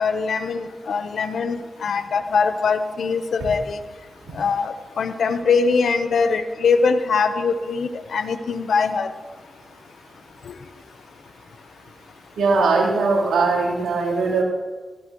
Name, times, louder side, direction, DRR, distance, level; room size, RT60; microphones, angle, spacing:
voice 1, 0.0-3.8 4.3-9.1 10.5-10.6, left 5 dB, 75° left, 10 dB, 1.0 m, -22 dB
voice 2, 12.4-14.4, right 3 dB, 90° right, -5 dB, 3.8 m, -20 dB
17.5 x 17.5 x 3.1 m, 1.4 s
supercardioid pair, 40°, 0 cm